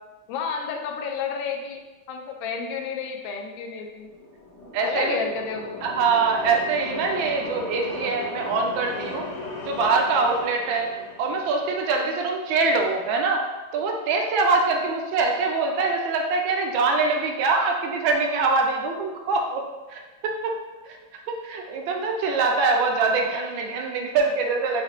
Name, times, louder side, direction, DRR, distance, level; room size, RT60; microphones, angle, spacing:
voice 1, 0.3-1.8 2.1-4.1 4.8-5.8, left 6 dB, 75° left, 3 dB, 1.3 m, -31 dB
sound 1, 4.0-11.9, left 2 dB, 55° left, 1.0 m, -37 dB
voice 2, 4.7-5.2 5.8-9.2 9.6-10.9 11.2-13.4 13.7-19.6 19.9-20.6 21.3-24.8, right 4 dB, 75° right, 2 dB, 1.4 m, -23 dB
5.7 x 3.0 x 3.0 m, 1.2 s
omnidirectional pair, 2.3 m